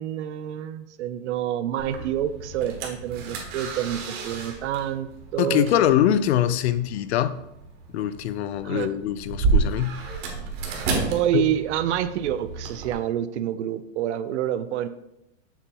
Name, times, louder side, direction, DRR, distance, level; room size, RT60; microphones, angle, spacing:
voice 1, 0.0-5.7 8.6-8.9 11.1-14.9, right 11 dB, 60° right, 12 dB, 0.6 m, -27 dB
sound 1, 1.8-12.9, right 4 dB, 40° right, 1.2 m, -31 dB
voice 2, 5.4-7.4 7.9-10.0 11.3-11.4, left 11 dB, 60° left, 14 dB, 0.5 m, -23 dB
7.0 x 2.8 x 5.3 m, 0.85 s
supercardioid pair, 155°, 39 cm